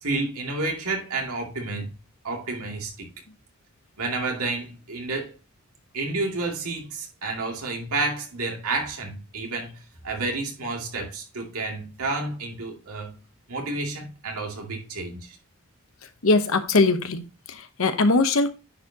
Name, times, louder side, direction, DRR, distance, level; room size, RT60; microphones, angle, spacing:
voice 1, 0.0-1.9 2.2-3.1 4.0-5.3 5.9-9.8 10.0-13.1 13.5-15.4, right 3 dB, 85° right, 2.4 m, -30 dB
voice 2, 16.2-18.5, left 3 dB, 70° left, 0.9 m, -21 dB
9.9 x 4.8 x 2.8 m
head